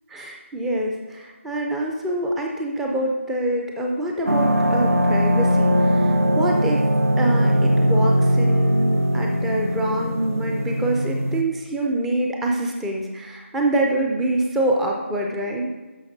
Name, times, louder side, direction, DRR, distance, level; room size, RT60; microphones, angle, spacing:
voice 1, 0.1-6.8 7.2-15.7, right 1 dB, 5° right, 0 dB, 0.4 m, -25 dB
sound 1, 4.3-11.4, equal, 90° right, 1.0 m, -20 dB
10.5 x 6.4 x 4.0 m, 1.3 s
figure-of-eight pair, 160°, 7 cm